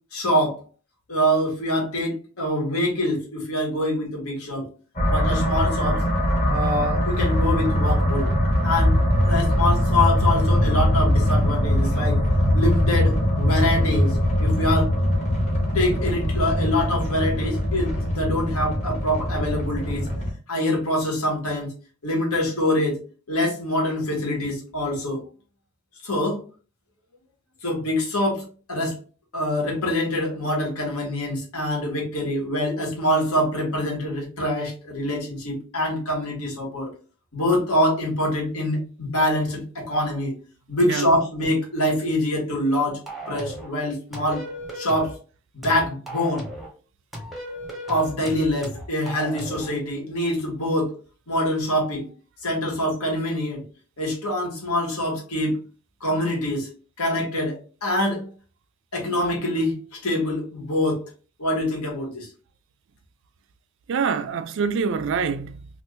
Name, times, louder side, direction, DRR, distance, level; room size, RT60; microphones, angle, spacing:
voice 1, 0.1-0.6 1.1-4.7 5.1-6.0 6.5-8.3 8.6-9.0 9.3-12.2 12.5-14.9 15.7-20.1 20.5-21.7 22.0-23.0 23.3-25.2 26.0-26.4 27.6-29.0 29.3-36.9 37.3-40.3 40.7-43.0 43.3-44.4 44.7-45.1 45.5-46.4 47.9-50.9 51.3-52.0 52.4-53.6 54.0-55.6 56.0-56.7 57.0-58.3 58.9-61.0 61.4-62.3, left 1 dB, 80° left, 1.4 m, -25 dB
sound 1, 5.0-20.3, equal, 30° left, 0.9 m, -22 dB
sound 2, 43.1-43.7 44.1-45.2 45.6-46.7 47.1-49.7, equal, ahead, 0.7 m, -36 dB
voice 2, 63.9-65.7, right 6 dB, 55° right, 0.3 m, -25 dB
2.9 x 2.5 x 3.2 m
head